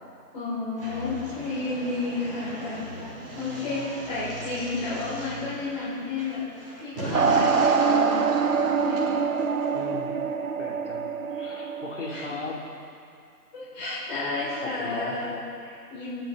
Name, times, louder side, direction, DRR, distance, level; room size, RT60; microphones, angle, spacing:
voice 1, 0.3-2.8 3.4-6.4 6.8-8.2 8.8-9.2 12.1-12.4 13.5-16.2, left 3 dB, 30° left, -11 dB, 4.4 m, -32 dB
sound 1, 0.8-9.9, right 2 dB, 35° right, 3.1 m, -39 dB
sound 2, 7.1-12.3, right 5 dB, 55° right, 1.0 m, -24 dB
voice 2, 9.7-10.1 10.6-12.6 14.6-15.2, left 3 dB, 45° left, -3 dB, 3.1 m, -37 dB
27.5 x 9.8 x 3.9 m, 2.3 s
figure-of-eight pair, 165°, 49 cm